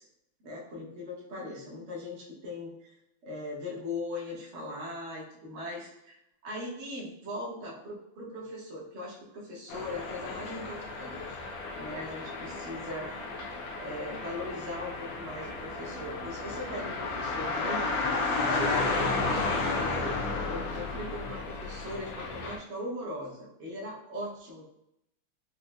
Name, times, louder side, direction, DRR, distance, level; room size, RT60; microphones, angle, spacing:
voice 1, 0.4-2.9 3.2-6.2 6.4-11.4 11.7-13.1 13.7-17.9 18.5-24.6, left 1 dB, 50° right, -5 dB, 0.9 m, -39 dB
sound 1, 9.7-22.6, left 3 dB, 75° left, 1.2 m, -33 dB
5.1 x 2.0 x 2.2 m, 0.82 s
omnidirectional pair, 2.3 m